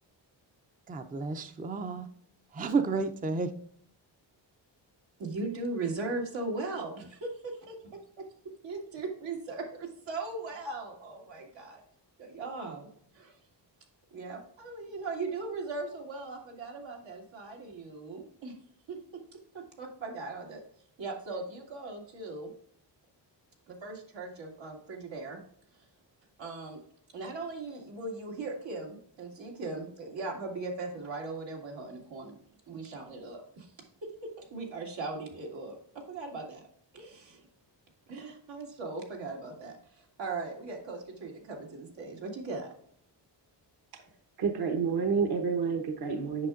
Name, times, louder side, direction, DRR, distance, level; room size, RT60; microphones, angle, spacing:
voice 1, 0.9-2.1 2.5-3.5, right 4 dB, 20° right, 8 dB, 0.5 m, -31 dB
voice 2, 5.2-8.3 8.6-11.8 12.2-12.9 13.1-13.3 14.1-18.5 18.9-19.0 19.8-20.6 21.0-22.5 23.7-25.4 26.4-26.8 27.1-32.4 32.7-33.7 34.4-36.6 36.9-37.4 38.1-42.7, right 3 dB, 85° right, -1 dB, 2.0 m, -38 dB
voice 3, 44.4-46.5, right 5 dB, 60° right, 5 dB, 1.0 m, -29 dB
8.3 x 5.8 x 2.5 m, 0.64 s
cardioid pair, 100°, 44 cm